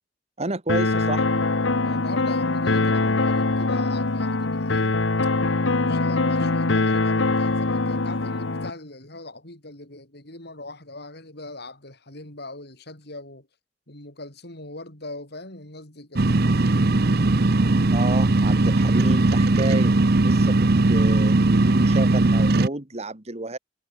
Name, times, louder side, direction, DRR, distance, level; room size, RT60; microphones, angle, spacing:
voice 1, 0.4-1.5 17.4-23.6, right 2 dB, 35° right, 2.3 m, -31 dB
sound 1, 0.7-8.7, left 3 dB, 85° left, 1.3 m, -23 dB
voice 2, 1.8-5.0 5.9-13.5 13.9-16.3, left 2 dB, 60° left, 6.7 m, -40 dB
sound 2, 16.2-22.7, right 2 dB, 55° right, 0.9 m, -19 dB
head